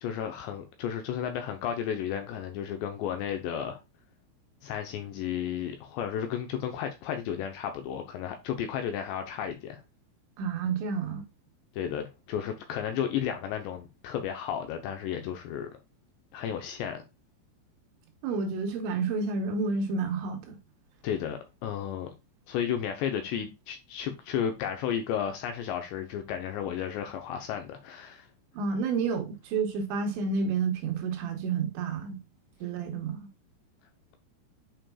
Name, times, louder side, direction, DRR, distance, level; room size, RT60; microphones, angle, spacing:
voice 1, 0.0-3.8 4.6-9.8 11.7-15.7 16.3-17.0 21.0-22.1 22.5-28.3, left 9 dB, 80° left, 2.7 m, -33 dB
voice 2, 10.4-11.3 18.2-20.6 28.5-32.2 32.6-33.3, right 5 dB, 75° right, 3.1 m, -30 dB
8.9 x 5.0 x 2.3 m
omnidirectional pair, 5.6 m